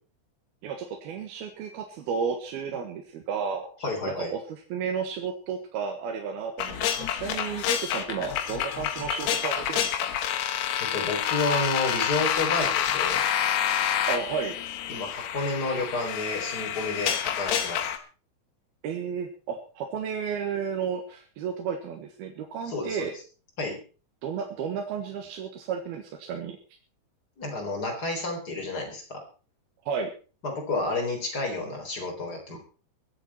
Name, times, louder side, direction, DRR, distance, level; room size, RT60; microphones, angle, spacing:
voice 1, 0.6-3.7 4.2-10.0 14.1-14.5 18.8-23.1 24.2-26.6 29.9-30.1, right 6 dB, 75° right, 3 dB, 3.4 m, -32 dB
voice 2, 3.8-4.3 10.8-13.2 14.9-17.9 22.7-23.1 23.6-23.8 27.4-29.2 30.4-32.6, left 2 dB, 25° left, 1 dB, 4.4 m, -30 dB
sound 1, 6.6-18.0, left 10 dB, 80° left, 3.3 m, -28 dB
23.5 x 9.1 x 4.4 m, 0.37 s
omnidirectional pair, 4.6 m